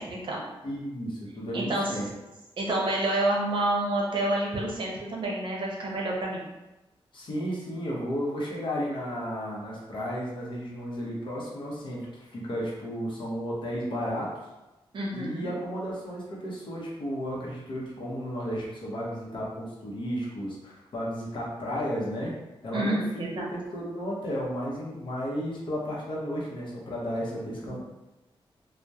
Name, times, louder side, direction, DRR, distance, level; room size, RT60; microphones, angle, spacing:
voice 1, 0.0-0.4 1.5-1.8 2.6-6.4 14.9-15.5 22.7-23.5 27.7-27.8, right 1 dB, 60° right, -2 dB, 0.6 m, -28 dB
voice 2, 0.6-2.0 7.1-14.3 15.1-22.3 22.6-23.3 23.5-27.8, equal, 60° left, -4 dB, 0.7 m, -33 dB
2.7 x 2.1 x 2.3 m, 1.0 s
wide cardioid pair, 130°, 10 cm